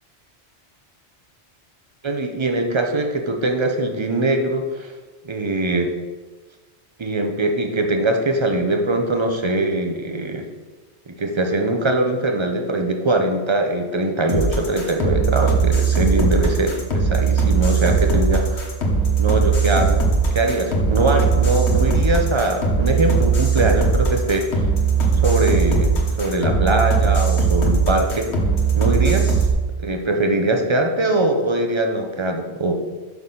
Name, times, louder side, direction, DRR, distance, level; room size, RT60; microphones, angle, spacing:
voice 1, 2.0-4.9 5.2-6.0 7.0-10.5 11.1-18.6 19.2-20.0 20.3-24.7 25.1-28.3 28.8-29.4 29.8-32.7, right 2 dB, 35° right, 4 dB, 0.6 m, -22 dB
sound 1, 14.3-29.5, right 5 dB, 85° left, 1.4 m, -19 dB
5.9 x 5.8 x 3.9 m, 1.3 s
omnidirectional pair, 1.1 m